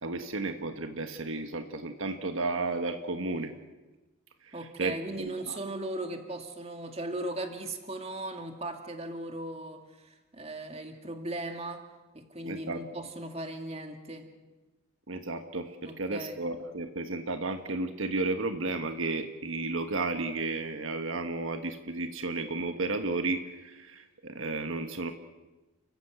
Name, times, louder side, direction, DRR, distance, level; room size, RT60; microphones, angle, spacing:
voice 1, 0.0-3.5 4.4-5.6 12.4-12.8 15.1-25.1, right 3 dB, 70° right, 7 dB, 1.3 m, -33 dB
voice 2, 4.5-11.8 12.1-14.3 15.8-16.4, right 1 dB, 30° right, 5 dB, 2.2 m, -38 dB
30.0 x 14.5 x 8.1 m, 1.2 s
head